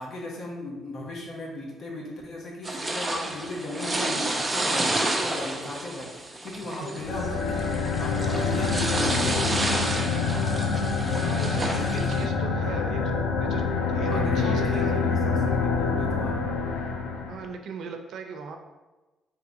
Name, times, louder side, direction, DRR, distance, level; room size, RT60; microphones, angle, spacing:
voice 1, 0.0-7.7 8.0-9.6 11.9-12.1 12.6-13.1 14.1-16.5, left 1 dB, 60° left, -1 dB, 1.0 m, -37 dB
sound 1, 2.6-12.2, right 2 dB, 20° right, 0.6 m, -30 dB
sound 2, 7.0-17.5, left 4 dB, 90° left, 0.4 m, -26 dB
voice 2, 11.2-13.1 13.4-13.6 13.9-15.0 17.3-18.6, right 5 dB, 75° right, 4 dB, 0.5 m, -38 dB
3.5 x 3.0 x 3.9 m, 1.2 s
cardioid pair, 90°, 0 cm